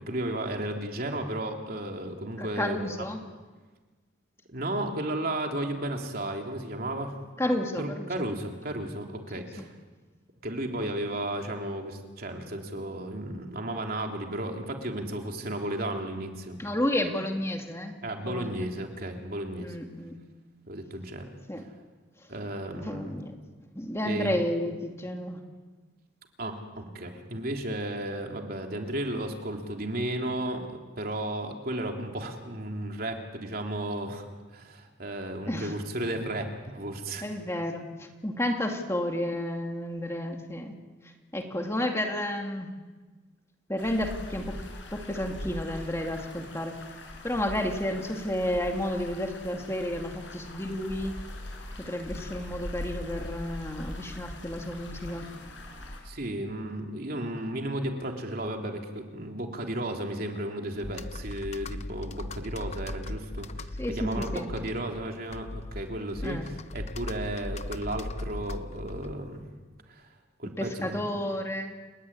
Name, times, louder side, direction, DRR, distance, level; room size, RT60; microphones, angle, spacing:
voice 1, 0.0-2.9 4.5-7.1 7.8-9.7 10.4-16.6 18.0-19.8 20.7-21.4 22.3-23.3 24.0-24.4 26.4-34.2 34.5-37.2 56.0-63.7 64.0-69.4 69.9-70.0 70.4-71.1, right 1 dB, 50° right, 2 dB, 3.3 m, -34 dB
voice 2, 2.4-3.2 7.4-8.3 9.6-9.7 16.6-17.9 18.2-18.7 19.6-20.2 21.5-21.6 22.7-23.4 23.7-25.4 35.4-35.7 37.2-40.7 41.0-42.7 43.7-44.6 44.9-46.8 47.2-51.1 51.8-55.3 63.8-64.7 66.2-66.5 70.6-71.7, left 1 dB, 15° left, 3 dB, 2.3 m, -31 dB
sound 1, 43.8-56.0, left 1 dB, 80° left, 7.3 m, -41 dB
Computer keyboard, 60.8-69.4, left 2 dB, 35° left, 0.8 m, -38 dB
30.0 x 17.0 x 9.9 m, 1.3 s
head